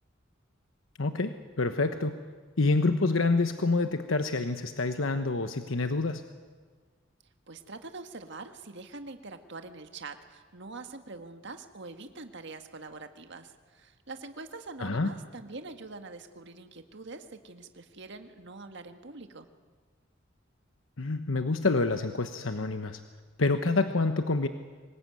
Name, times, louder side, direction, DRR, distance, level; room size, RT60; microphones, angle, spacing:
voice 1, 1.0-2.2 2.6-6.2 14.8-15.1 21.0-23.0 23.4-24.5, left 3 dB, 85° left, 8 dB, 1.1 m, -27 dB
voice 2, 7.5-19.5, right 3 dB, 65° right, 7 dB, 1.7 m, -44 dB
24.5 x 20.0 x 9.2 m, 1.5 s
head